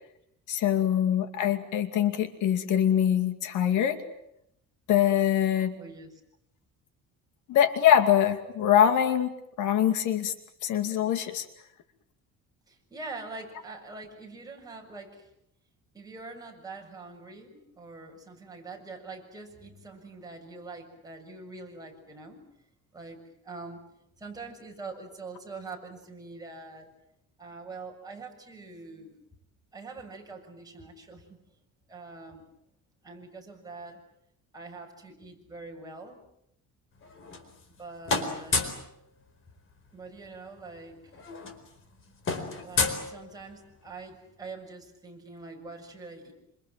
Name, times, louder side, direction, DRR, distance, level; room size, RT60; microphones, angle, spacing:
voice 1, 0.5-4.0 4.9-5.8 7.5-9.3 9.6-10.3 10.6-11.5, left 10 dB, 70° left, 8 dB, 2.5 m, -23 dB
voice 2, 5.7-6.2 12.7-15.3 15.9-22.5 22.9-23.8 24.2-26.9 27.4-29.2 29.7-31.4 31.9-32.5 33.0-34.0 34.5-36.2 37.8-38.8 39.9-41.1 42.6-46.3, right 3 dB, 10° right, 0 dB, 7.0 m, -44 dB
sound 1, 37.0-37.8 38.1-38.9 40.3-40.4 40.6-40.8 41.1-43.7, left 4 dB, 40° left, 4.5 m, -31 dB
27.5 x 27.0 x 7.6 m, 0.77 s
cardioid pair, 145°, 31 cm